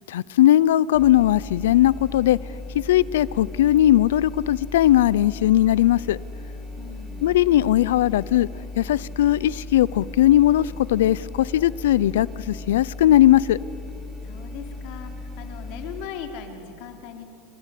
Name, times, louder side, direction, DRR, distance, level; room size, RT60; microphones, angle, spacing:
voice 1, 0.1-2.4 2.7-6.2 7.2-8.5 8.8-13.6, left 13 dB, 90° left, 22 dB, 0.6 m, -19 dB
sound 1, 0.9-16.0, left 2 dB, 10° right, 5.6 m, -37 dB
voice 2, 6.7-7.3 14.2-17.2, left 8 dB, 65° left, 5 dB, 3.5 m, -39 dB
28.0 x 22.5 x 8.4 m, 2.7 s
supercardioid pair, 110°, 0 cm